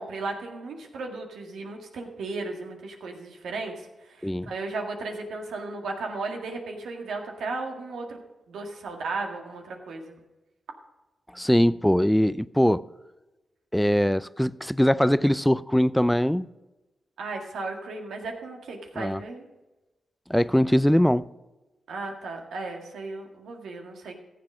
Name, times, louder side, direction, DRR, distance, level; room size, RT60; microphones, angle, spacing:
voice 1, 0.0-8.2 8.5-10.1 17.2-19.5 21.9-24.2, right 3 dB, 85° right, 1.9 m, -35 dB
voice 2, 11.3-12.8 13.7-16.5 19.0-19.2 20.3-21.3, equal, 5° left, 0.4 m, -22 dB
14.5 x 7.6 x 6.2 m
cardioid pair, 55°, 0 cm